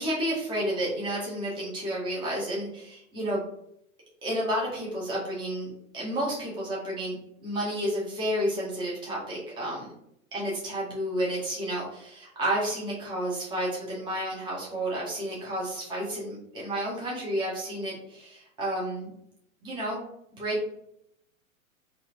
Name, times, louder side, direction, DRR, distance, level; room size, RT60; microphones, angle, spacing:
voice 1, 0.0-3.4 4.2-9.9 10.3-19.1 19.6-20.0 20.4-20.6, right 1 dB, 10° right, -6 dB, 0.8 m, -31 dB
2.8 x 2.6 x 2.4 m, 0.76 s
hypercardioid pair, 105°, 41 cm